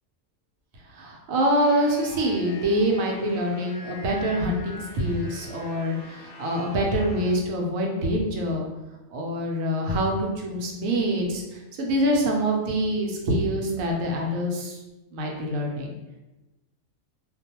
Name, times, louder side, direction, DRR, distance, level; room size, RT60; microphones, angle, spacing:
voice 1, 0.9-8.7 9.1-14.8 15.1-15.9, equal, 85° right, 0 dB, 1.0 m, -25 dB
sound 1, 1.5-7.3, left 3 dB, 60° left, 0.7 m, -44 dB
2.4 x 2.2 x 2.8 m, 1.1 s
omnidirectional pair, 1.4 m